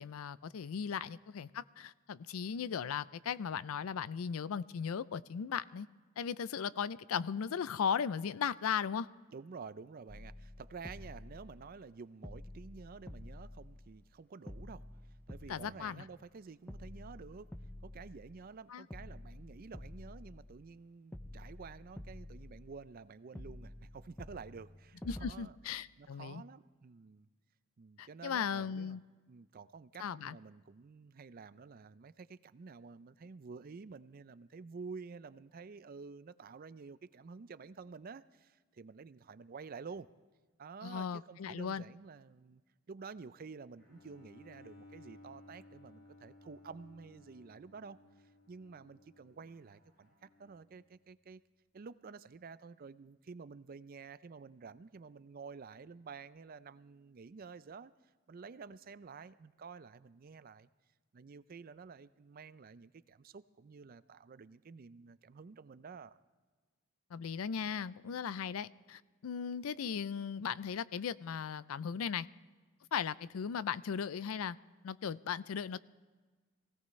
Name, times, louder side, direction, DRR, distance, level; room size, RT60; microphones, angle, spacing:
voice 1, 0.0-5.9 6.2-9.1 15.5-16.0 18.7-18.9 25.1-26.4 28.0-29.0 30.0-30.4 40.8-41.8 67.1-72.3 72.9-74.6 74.8-75.8, left 7 dB, 85° left, 18 dB, 0.4 m, -37 dB
voice 2, 9.3-14.8 15.3-17.5 17.8-25.6 26.0-27.3 27.8-29.0 29.3-40.1 40.6-42.6 42.9-48.0 48.5-51.4 51.7-57.9 58.3-60.7 61.1-66.2, right 5 dB, 45° right, 15 dB, 0.4 m, -50 dB
sound 1, 10.1-11.9 12.2-14.1 14.5-16.3 16.7-18.6 18.9-20.8 21.1-23.0 23.3-25.3, left 1 dB, 10° left, 0.5 m, -50 dB
Bowed string instrument, 43.8-50.8, left 1 dB, 55° left, 5.0 m, -59 dB
23.0 x 16.5 x 3.2 m, 1.4 s
head